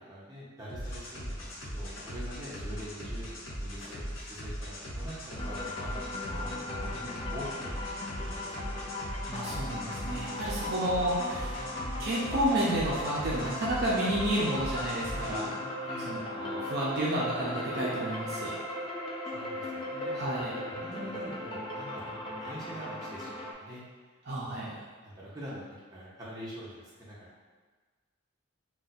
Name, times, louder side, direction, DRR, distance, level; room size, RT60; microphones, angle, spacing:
voice 1, 0.0-4.0 4.3-7.0 7.2-7.7 8.3-8.4 15.8-16.1 19.3-20.2 20.5-23.8 24.4-25.6 25.9-27.3, equal, 20° right, -8 dB, 0.8 m, -44 dB
sound 1, 0.7-15.5, equal, 80° left, 0.9 m, -39 dB
sound 2, 5.4-23.5, left 1 dB, 25° left, 0.3 m, -37 dB
voice 2, 6.3-7.2 9.3-11.6 12.0-15.6 16.1-18.5 20.1-20.5 24.3-24.7, right 1 dB, 50° right, -6 dB, 0.5 m, -31 dB
2.5 x 2.2 x 4.0 m, 1.4 s
head